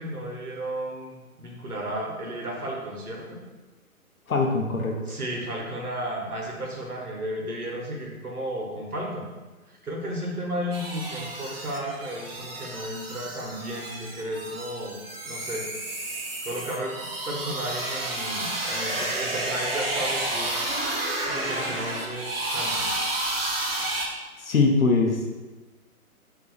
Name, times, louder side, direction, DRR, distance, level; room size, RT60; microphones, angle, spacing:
voice 1, 0.0-3.4 5.1-9.3 9.7-15.0 15.2-15.6 16.4-20.6 21.1-22.9, equal, 90° right, -1 dB, 1.0 m, -33 dB
voice 2, 4.3-5.1 24.4-25.3, left 3 dB, 70° left, 1 dB, 0.6 m, -22 dB
sound 1, 10.7-24.1, right 2 dB, 45° right, 0.4 m, -31 dB
2.7 x 2.5 x 3.8 m, 1.2 s
figure-of-eight pair, 140°, 44 cm